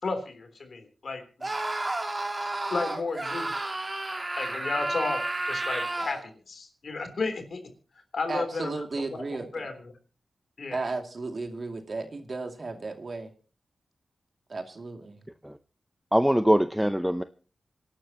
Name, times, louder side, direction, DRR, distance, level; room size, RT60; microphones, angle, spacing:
voice 1, 0.0-1.5 2.7-3.6 4.4-7.6 8.1-8.8 9.1-9.2 9.5-9.7 10.6-10.8, left 3 dB, 65° left, 7 dB, 3.5 m, -33 dB
Screaming, 1.4-6.3, right 2 dB, 30° right, 2.6 m, -31 dB
voice 2, 8.3-9.5 10.7-13.3 14.5-15.2, right 3 dB, 50° right, 4 dB, 2.6 m, -34 dB
voice 3, 16.1-17.2, equal, 5° right, 10 dB, 0.6 m, -22 dB
26.5 x 11.5 x 3.0 m, 0.38 s
wide cardioid pair, 95°, 0 cm